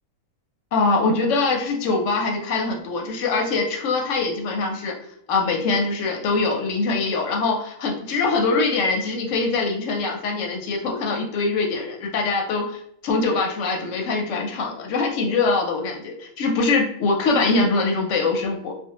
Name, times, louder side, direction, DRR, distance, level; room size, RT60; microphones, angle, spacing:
voice 1, 0.7-4.9 5.3-18.7, left 3 dB, 70° left, 1 dB, 0.8 m, -23 dB
2.5 x 2.2 x 2.8 m, 0.69 s
omnidirectional pair, 1.6 m